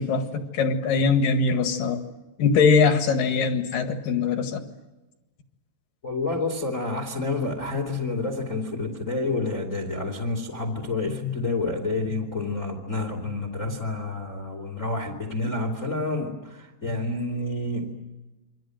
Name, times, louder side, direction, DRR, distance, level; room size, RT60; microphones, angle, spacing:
voice 1, 0.0-2.0 2.4-4.6, left 5 dB, 60° left, 6 dB, 2.9 m, -22 dB
voice 2, 6.0-17.9, left 2 dB, 20° left, 4 dB, 2.1 m, -29 dB
29.0 x 24.5 x 7.8 m, 1.1 s
omnidirectional pair, 5.4 m